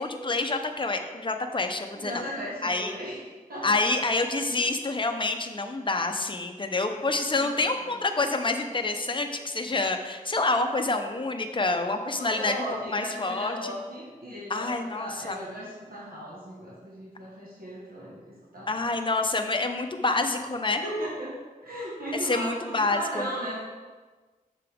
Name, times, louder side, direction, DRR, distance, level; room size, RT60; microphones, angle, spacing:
voice 1, 0.0-2.2 2.6-3.0 3.6-12.5 12.9-13.7 14.5-15.4 18.7-20.8 22.1-23.3, left 3 dB, 35° left, 5 dB, 0.7 m, -27 dB
voice 2, 1.9-3.2 3.5-3.9 7.4-7.5 12.2-14.7 14.9-18.9 20.8-21.3 21.6-23.6, equal, 85° right, -6 dB, 1.5 m, -36 dB
7.3 x 5.9 x 3.5 m, 1.3 s
wide cardioid pair, 65°, 15 cm